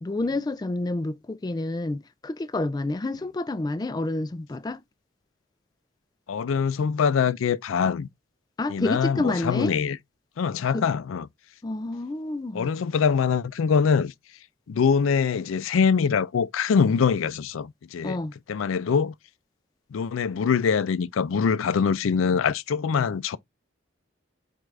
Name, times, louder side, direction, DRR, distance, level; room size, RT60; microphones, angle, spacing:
voice 1, 0.0-4.8 8.6-9.7 10.7-10.9 11.6-12.7 18.0-18.3, left 2 dB, 20° left, 0.3 m, -29 dB
voice 2, 6.3-8.1 8.7-10.0 10.4-11.3 12.5-14.1 14.7-18.2 18.5-19.1 19.9-23.4, left 6 dB, 90° left, 0.4 m, -23 dB
4.8 x 2.4 x 3.2 m
head